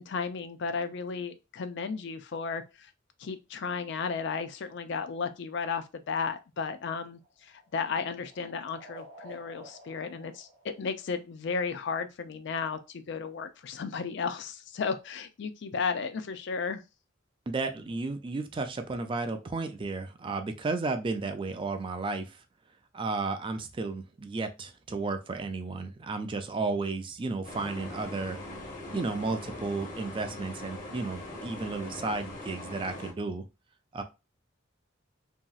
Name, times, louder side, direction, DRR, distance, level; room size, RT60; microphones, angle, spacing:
voice 1, 0.0-2.9 3.2-16.8, left 5 dB, 60° left, 0.4 m, -34 dB
sound 1, 7.1-11.5, right 1 dB, 65° right, 0.8 m, -52 dB
voice 2, 17.5-22.4 22.9-28.4 28.9-33.4 33.9-34.0, right 3 dB, 25° right, 0.3 m, -33 dB
sound 2, 27.4-33.1, left 1 dB, 40° left, 0.8 m, -41 dB
2.9 x 2.7 x 2.3 m
head